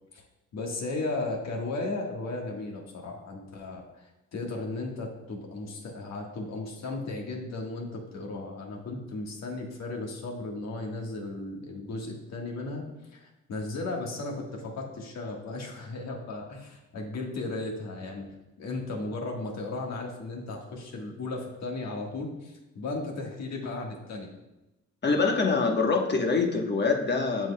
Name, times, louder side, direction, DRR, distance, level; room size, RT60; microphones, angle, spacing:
voice 1, 0.5-12.9 13.1-18.3 18.6-24.3, left 2 dB, 60° left, 1 dB, 1.5 m, -35 dB
voice 2, 25.0-27.5, left 4 dB, 35° left, 3 dB, 1.1 m, -25 dB
7.6 x 7.4 x 2.2 m, 0.98 s
cardioid pair, 90°, 30 cm